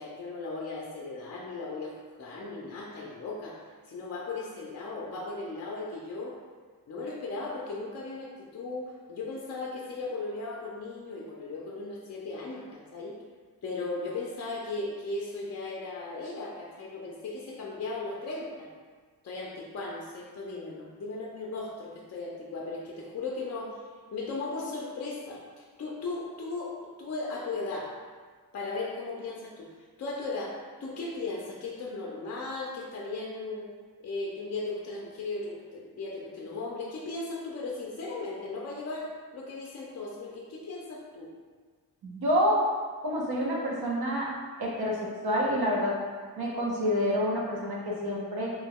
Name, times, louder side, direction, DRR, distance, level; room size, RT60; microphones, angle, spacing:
voice 1, 0.0-1.9 2.2-3.6 3.9-6.3 6.9-13.2 13.6-18.7 19.2-23.8 24.1-27.9 28.5-33.7 34.0-41.3, left 3 dB, 45° left, -3 dB, 0.4 m, -37 dB
voice 2, 42.0-42.6 43.0-44.3 44.6-45.9 46.4-48.5, equal, 80° right, -3 dB, 0.8 m, -28 dB
3.0 x 2.2 x 3.5 m, 1.5 s
wide cardioid pair, 140°, 37 cm